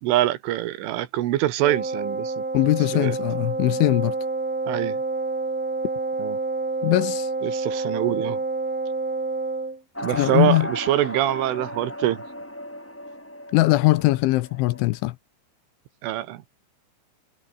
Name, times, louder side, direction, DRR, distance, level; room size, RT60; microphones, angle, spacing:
voice 1, 0.0-2.4 2.9-3.2 4.7-5.0 6.2-6.4 7.4-8.4 10.0-12.2 16.0-16.4, right 14 dB, 75° right, 3.8 m, -24 dB
Wind instrument woodwind instrument, 1.6-9.8, right 3 dB, 20° right, 3.6 m, -28 dB
voice 2, 2.5-4.1 6.8-7.3 10.1-10.7 13.5-15.2, left 19 dB, 80° left, 3.0 m, -21 dB
sound 1, 9.9-14.9, left 1 dB, 5° left, 1.2 m, -35 dB
omnidirectional pair, 5.9 m